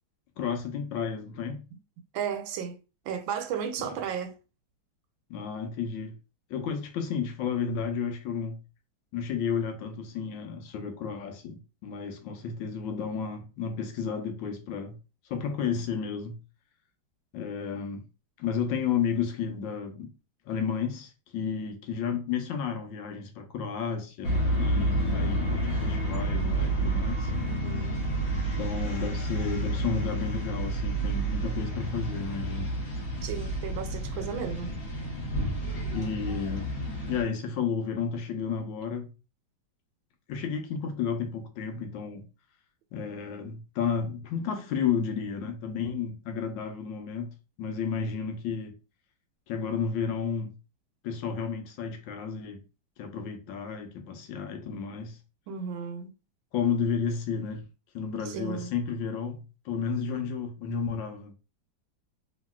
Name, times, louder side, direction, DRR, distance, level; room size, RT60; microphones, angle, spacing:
voice 1, 0.4-1.7 3.8-4.0 5.3-6.2 6.5-8.6 9.1-15.0 15.3-16.4 17.3-18.1 18.4-20.1 20.5-27.3 28.6-32.7 35.9-36.7 37.1-39.1 40.3-42.3 42.9-48.7 49.5-50.6 51.0-52.6 53.0-55.2 56.5-57.6 57.9-61.3, left 6 dB, 80° left, 1.3 m, -32 dB
voice 2, 2.1-2.8 3.1-4.3 27.5-28.0 33.2-34.8 55.5-56.1 58.3-58.7, right 7 dB, 85° right, 1.3 m, -34 dB
sound 1, 24.2-37.2, right 1 dB, 50° left, 1.1 m, -29 dB
3.0 x 2.8 x 2.2 m
omnidirectional pair, 2.1 m